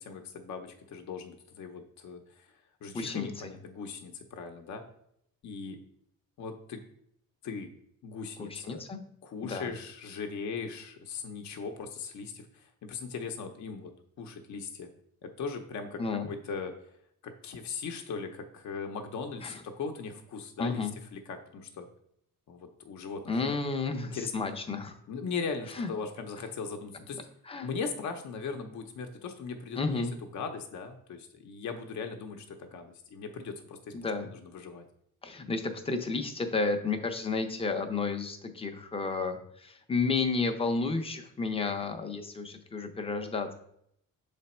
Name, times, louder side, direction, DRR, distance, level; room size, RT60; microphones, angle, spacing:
voice 1, 0.0-2.5 2.8-4.8 5.4-5.8 6.4-6.8 7.4-7.7 8.0-8.8 9.2-13.9 14.2-14.9 15.2-16.0 16.3-16.7 17.2-20.8 21.1-21.9 22.5-23.7 24.1-24.3 25.1-27.2 27.6-30.1 30.3-34.9, left 5 dB, 55° left, 5 dB, 0.7 m, -39 dB
voice 2, 2.9-3.5 8.4-9.0 9.4-9.7 16.0-16.3 19.4-19.6 20.6-20.9 23.3-25.0 25.7-25.9 27.5-27.7 29.8-30.1 33.9-34.3 35.2-43.5, left 4 dB, 15° left, 6 dB, 0.5 m, -32 dB
6.6 x 3.3 x 4.2 m, 0.72 s
cardioid pair, 150°, 34 cm